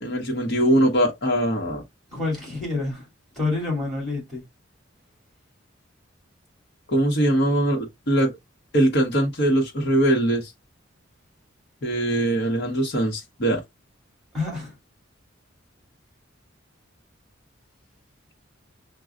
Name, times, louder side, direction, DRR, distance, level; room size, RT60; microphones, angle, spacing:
voice 1, 0.0-1.8 6.9-8.3 8.7-10.5 11.8-13.6, right 1 dB, 55° left, 1.1 m, -21 dB
voice 2, 2.1-3.1 3.4-4.4 14.3-14.7, left 3 dB, ahead, 2.7 m, -28 dB
6.0 x 2.3 x 2.4 m
head